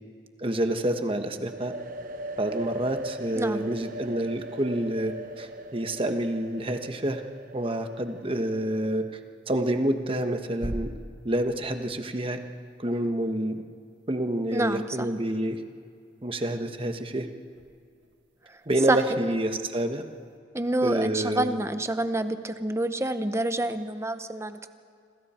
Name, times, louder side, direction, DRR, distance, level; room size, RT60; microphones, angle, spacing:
voice 1, 0.4-1.8 2.4-7.2 7.5-9.0 9.5-10.9 11.2-12.4 12.8-13.6 14.1-15.6 16.2-17.3 18.7-20.0 20.8-21.5, right 1 dB, 30° right, 6 dB, 1.3 m, -28 dB
sound 1, 1.4-9.1, right 1 dB, 50° right, 0.9 m, -40 dB
sound 2, 2.9-20.4, right 1 dB, 75° right, 1.9 m, -49 dB
voice 2, 14.5-15.1 18.4-18.6 18.9-19.3 20.5-24.8, right 1 dB, 15° right, 10 dB, 0.9 m, -28 dB
27.5 x 26.5 x 4.4 m, 2.3 s
head